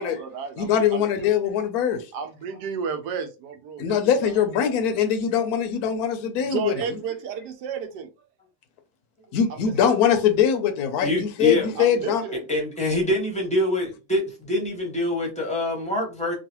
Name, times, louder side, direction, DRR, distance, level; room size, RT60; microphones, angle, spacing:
voice 1, 0.0-1.3 2.1-4.4 6.5-8.1 9.5-9.7 11.8-12.4, right 6 dB, 85° right, 1.2 m, -32 dB
voice 2, 0.6-2.1 3.8-6.7 9.3-12.2, left 8 dB, 75° left, 1.0 m, -22 dB
voice 3, 11.0-11.7 12.5-16.4, left 1 dB, 5° left, 0.7 m, -25 dB
3.1 x 2.3 x 2.9 m
omnidirectional pair, 1.8 m